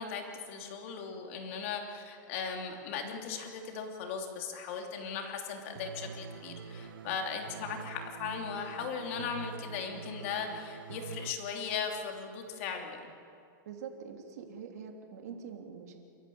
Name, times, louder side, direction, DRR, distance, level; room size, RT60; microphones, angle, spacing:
voice 1, 0.0-13.1, left 6 dB, 35° left, 2 dB, 3.0 m, -38 dB
sound 1, 5.8-11.3, right 6 dB, 85° right, 1.1 m, -45 dB
voice 2, 13.6-16.0, right 6 dB, 50° right, 2 dB, 3.3 m, -44 dB
29.0 x 14.5 x 8.5 m, 2.4 s
supercardioid pair, 175°, 11 cm